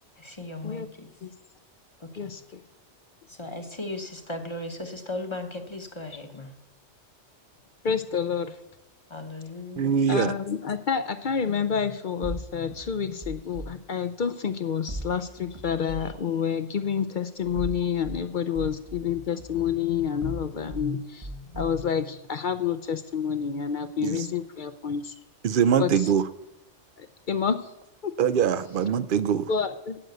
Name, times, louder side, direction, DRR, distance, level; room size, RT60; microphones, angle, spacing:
voice 1, 0.2-1.1 2.0-2.3 3.3-6.5 9.1-10.0, left 2 dB, 25° left, 1.0 m, -37 dB
voice 2, 2.2-2.6 7.8-8.5 10.1-25.1 25.8-25.9 27.0-27.7 28.0-28.1 29.5-30.0, left 7 dB, 55° left, 0.6 m, -28 dB
voice 3, 9.8-10.3 24.0-24.3 25.4-26.2 28.2-29.5, right 8 dB, 60° right, 0.6 m, -23 dB
sound 1, 12.2-13.7 14.9-16.2 17.4-18.2 18.5-20.9 21.2-21.9, right 1 dB, 30° right, 1.0 m, -39 dB
10.0 x 7.7 x 8.0 m
omnidirectional pair, 1.2 m